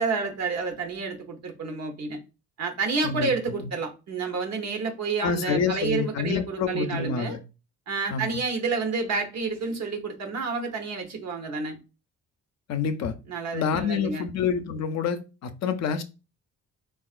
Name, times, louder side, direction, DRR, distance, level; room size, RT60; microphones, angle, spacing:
voice 1, 0.0-2.2 2.6-7.4 7.9-11.8 13.3-14.3, right 4 dB, 60° right, 0.8 m, -29 dB
voice 2, 3.0-3.7 5.2-7.4 8.1-8.4 12.7-13.1 13.5-16.0, left 6 dB, 60° left, 0.5 m, -27 dB
3.5 x 2.4 x 2.4 m
cardioid pair, 90°, 30 cm